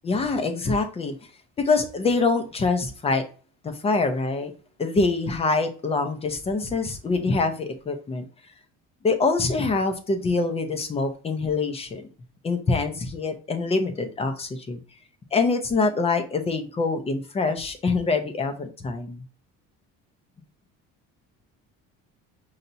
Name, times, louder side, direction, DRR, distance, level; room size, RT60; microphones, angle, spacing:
voice 1, 0.0-1.1 1.6-3.2 3.6-4.5 4.8-8.2 9.0-12.0 12.4-14.8 15.3-19.2, left 3 dB, 20° left, 7 dB, 0.6 m, -25 dB
5.5 x 2.8 x 2.6 m, 0.37 s
cardioid pair, 165°, 29 cm